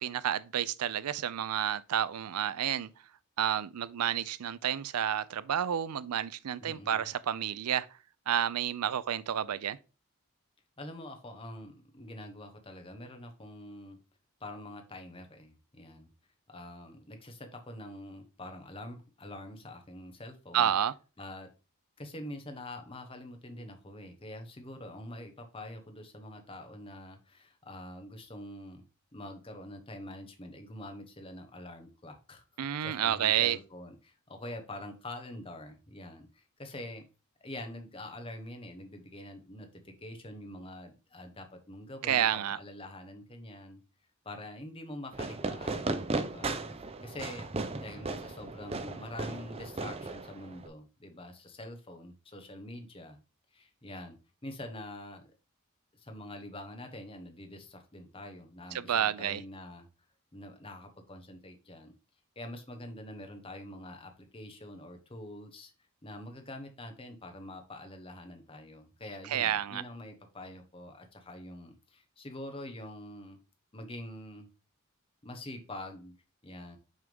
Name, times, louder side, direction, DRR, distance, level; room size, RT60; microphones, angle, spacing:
voice 1, 0.0-2.9 3.4-7.9 8.3-9.8 20.5-20.9 32.6-33.6 42.0-42.6 58.7-59.4 69.3-69.8, right 10 dB, 90° right, 0.4 m, -30 dB
voice 2, 6.6-7.1 10.8-14.0 14.4-16.1 16.5-20.8 21.2-21.5 22.0-28.8 29.1-32.4 32.8-37.1 37.4-43.8 44.2-46.6 47.0-47.5 47.8-53.2 53.5-54.2 54.4-55.2 55.9-59.9 60.3-61.9 62.4-65.7 66.0-73.4 73.7-74.5 75.2-76.1 76.4-76.8, left 1 dB, 25° left, 1.1 m, -45 dB
Fireworks, 45.1-50.7, right 3 dB, 25° right, 0.5 m, -36 dB
6.3 x 3.5 x 5.2 m
head